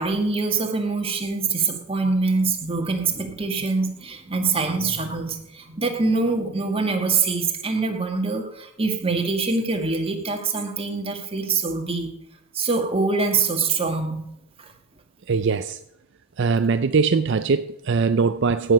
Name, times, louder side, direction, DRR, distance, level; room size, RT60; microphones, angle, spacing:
voice 1, 0.0-12.1 12.5-14.2, right 4 dB, 25° right, 4 dB, 1.7 m, -24 dB
voice 2, 15.3-15.8 16.4-18.7, right 5 dB, 55° right, 11 dB, 0.4 m, -21 dB
16.5 x 7.9 x 5.3 m, 0.79 s
head